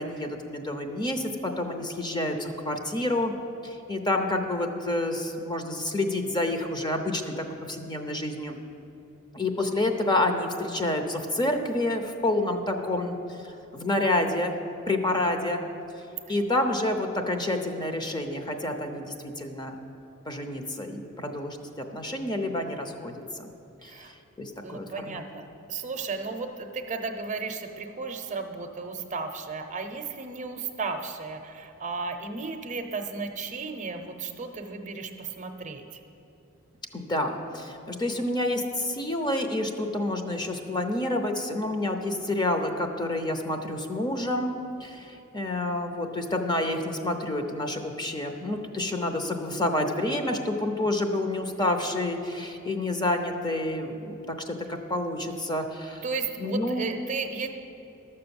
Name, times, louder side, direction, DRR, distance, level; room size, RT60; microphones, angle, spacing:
voice 1, 0.0-3.3 3.6-8.6 9.3-14.6 14.9-15.6 16.3-19.8 20.3-23.5 23.8-24.1 24.4-25.2 36.9-44.5 44.8-56.0 56.4-56.9, left 1 dB, 20° left, 5 dB, 0.7 m, -29 dB
voice 2, 15.2-15.6 23.8-24.1 24.6-35.8 56.0-57.5, right 4 dB, 35° right, 6 dB, 0.7 m, -34 dB
12.5 x 6.8 x 7.0 m, 2.8 s
head